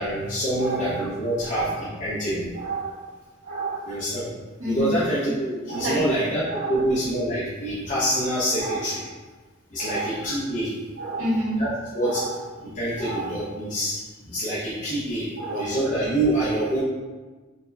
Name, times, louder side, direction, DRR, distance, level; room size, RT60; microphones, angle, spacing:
voice 1, 0.0-2.5 3.9-4.3 4.6-9.0 9.7-10.7 11.6-11.7 11.9-12.2 12.7-13.9 14.3-16.8, right 1 dB, 40° left, -9 dB, 0.6 m, -26 dB
voice 2, 0.6-1.0 1.4-1.9 2.5-3.1 3.4-3.9 4.6-4.9 5.7-6.1 6.5-6.8 8.6-8.9 9.8-10.2 11.0-11.6 12.0-12.4 13.0-13.4 15.4-15.8, right 2 dB, 85° right, -13 dB, 1.5 m, -30 dB
4.1 x 2.1 x 2.6 m, 1.3 s
head